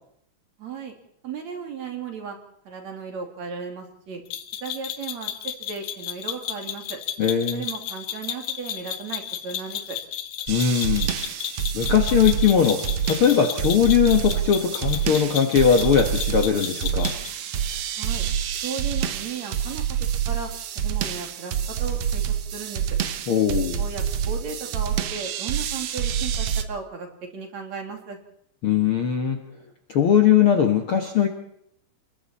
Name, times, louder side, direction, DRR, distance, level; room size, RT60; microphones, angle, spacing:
voice 1, 0.6-0.9 1.2-2.4 2.7-4.2 4.6-7.0 7.5-10.0 18.0-18.3 18.6-20.0 20.3-20.5 20.8-22.2 22.5-22.8 23.8-27.1 27.3-28.2, right 5 dB, 50° right, 3 dB, 3.6 m, -35 dB
sound 1, 4.3-17.4, left 11 dB, 75° left, 2.9 m, -33 dB
voice 2, 7.2-7.6 10.5-11.1 11.7-17.1 23.3-23.8 28.6-29.4 29.9-31.3, left 8 dB, 50° left, 4 dB, 1.7 m, -20 dB
sound 2, 10.5-26.6, right 9 dB, 80° right, 1.4 m, -27 dB
29.0 x 21.0 x 4.3 m, 0.69 s
omnidirectional pair, 4.2 m